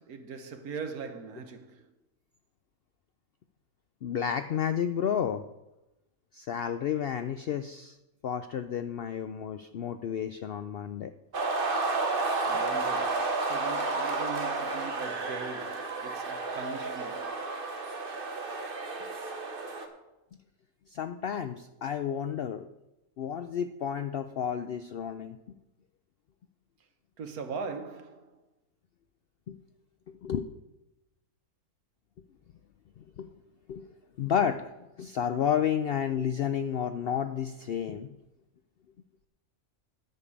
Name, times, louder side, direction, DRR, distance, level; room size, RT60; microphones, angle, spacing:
voice 1, 0.0-1.8 12.5-17.4 27.2-28.4, right 5 dB, 80° right, 1.5 m, -41 dB
voice 2, 4.0-5.4 6.3-8.0 8.2-11.1 20.9-22.7 23.2-25.4 29.5-29.6 30.2-30.5 33.0-33.3 33.7-33.8 34.2-34.7 35.0-38.1, left 8 dB, 90° left, 0.5 m, -31 dB
sound 1, 11.3-19.9, right 3 dB, 40° right, 1.3 m, -31 dB
10.5 x 5.5 x 8.5 m
omnidirectional pair, 1.6 m